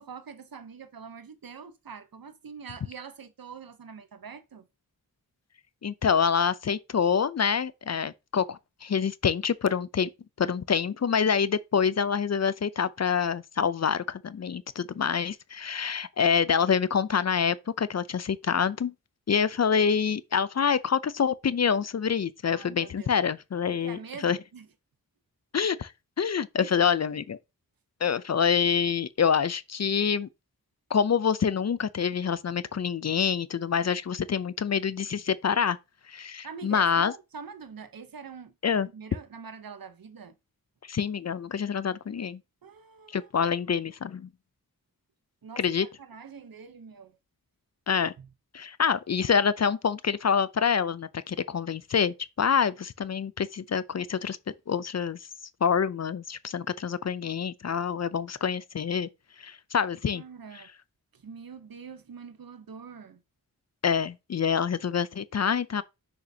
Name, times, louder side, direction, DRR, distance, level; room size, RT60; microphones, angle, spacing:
voice 1, 0.0-4.7 22.5-23.2 23.7-24.7 26.6-26.7 36.4-40.4 42.6-43.8 45.4-47.2 48.2-48.3 60.1-60.7 61.1-63.2, right 6 dB, 70° right, 0.8 m, -44 dB
voice 2, 5.8-10.1 10.4-18.9 19.3-24.4 25.5-25.9 26.2-27.4 28.0-30.3 30.9-35.8 36.1-37.1 38.6-38.9 40.9-42.4 43.1-44.3 45.6-45.9 47.9-48.1 48.5-54.4 54.7-55.2 55.6-59.1 59.4-60.2 63.8-65.8, left 7 dB, 45° left, 0.5 m, -26 dB
6.2 x 5.7 x 2.7 m
wide cardioid pair, 55°, 37 cm